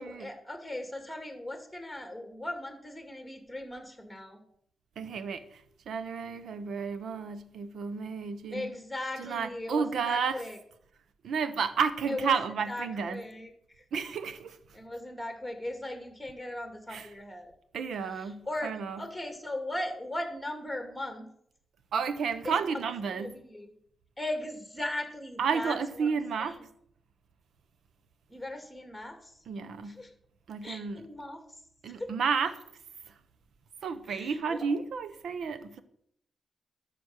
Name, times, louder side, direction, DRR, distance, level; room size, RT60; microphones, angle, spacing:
voice 1, 0.0-4.4 8.5-10.6 12.1-12.4 12.7-13.5 13.8-13.9 14.7-17.5 18.2-18.7 19.0-21.3 22.4-22.5 23.1-23.7 24.2-26.1 26.4-26.5 28.3-29.3 29.8-30.1 30.6-31.4 31.9-32.1 34.1-34.6, left 1 dB, 5° left, 2.4 m, -38 dB
voice 2, 5.0-8.7 9.2-10.4 11.2-13.2 13.9-14.6 16.9-17.1 17.7-19.0 21.9-23.4 25.4-26.6 29.5-30.0 30.5-31.0 31.8-32.6 33.1-33.2 33.8-35.8, right 6 dB, 75° right, 1.0 m, -32 dB
12.5 x 7.2 x 6.5 m
cardioid pair, 105°, 0 cm